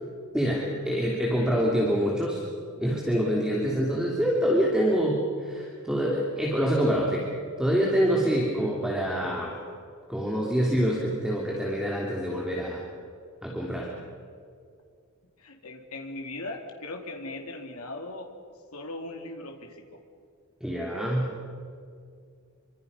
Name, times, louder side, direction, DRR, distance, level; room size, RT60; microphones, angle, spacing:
voice 1, 0.3-2.4 2.8-7.3 7.6-9.6 10.1-12.8 13.4-13.9 20.6-21.3, equal, 5° right, -3 dB, 3.1 m, -26 dB
voice 2, 15.4-18.3 18.7-20.0, left 2 dB, 80° left, 2 dB, 2.6 m, -39 dB
27.0 x 25.0 x 5.6 m, 2.3 s
head